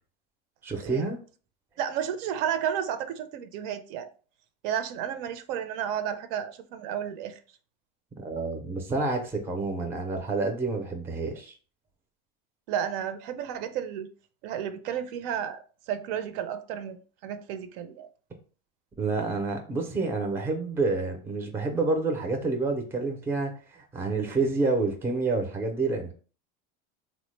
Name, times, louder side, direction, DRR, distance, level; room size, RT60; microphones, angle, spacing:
voice 1, 0.6-1.2 8.2-11.5 19.0-26.1, right 3 dB, 10° right, 0.4 m, -28 dB
voice 2, 1.8-4.1 4.6-7.3 12.7-14.1 14.4-17.0 17.2-18.1, right 9 dB, 65° right, 0.5 m, -32 dB
3.5 x 2.1 x 3.1 m
cardioid pair, 155°, 29 cm